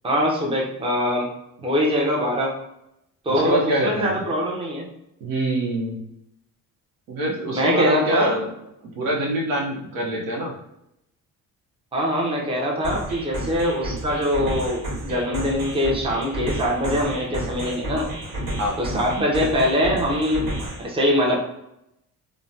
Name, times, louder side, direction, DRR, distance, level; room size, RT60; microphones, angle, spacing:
voice 1, 0.0-1.3 1.6-2.5 3.2-4.9 7.5-8.4 11.9-18.1 18.8-20.5 20.8-21.4, equal, 15° right, -2 dB, 0.6 m, -23 dB
voice 2, 3.3-4.1 5.2-6.0 7.1-8.5 9.0-10.5 18.6-18.8, right 1 dB, 90° right, 0 dB, 0.8 m, -24 dB
sound 1, 12.8-20.8, right 1 dB, 70° right, 1.3 m, -31 dB
3.2 x 2.1 x 2.6 m, 0.83 s
cardioid pair, 120°, 34 cm